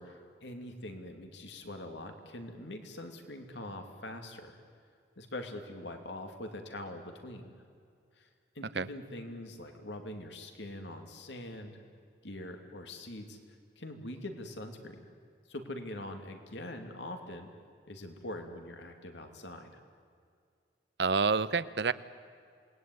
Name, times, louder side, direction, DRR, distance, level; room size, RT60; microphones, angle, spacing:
voice 1, 0.0-4.6 5.2-7.6 8.2-8.3 8.5-11.8 12.2-13.4 13.8-15.1 15.5-17.5 17.9-19.7, left 1 dB, 80° left, 5 dB, 2.7 m, -43 dB
voice 2, 21.0-21.9, right 5 dB, 70° right, 15 dB, 0.8 m, -28 dB
27.5 x 20.0 x 9.5 m, 2.3 s
head